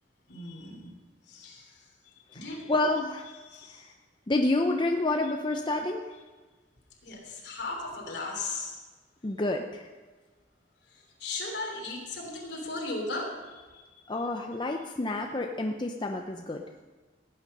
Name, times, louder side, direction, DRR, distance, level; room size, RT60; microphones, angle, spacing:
voice 1, 0.3-0.9 1.3-1.9 2.3-2.7 3.4-3.9 7.0-8.8 10.9-13.8, left 2 dB, 65° left, 0 dB, 3.2 m, -37 dB
voice 2, 2.7-3.3 3.7-3.8 4.3-6.1 9.2-9.9 14.1-16.6, left 2 dB, 25° left, 3 dB, 0.6 m, -29 dB
17.0 x 9.2 x 5.4 m, 1.3 s
head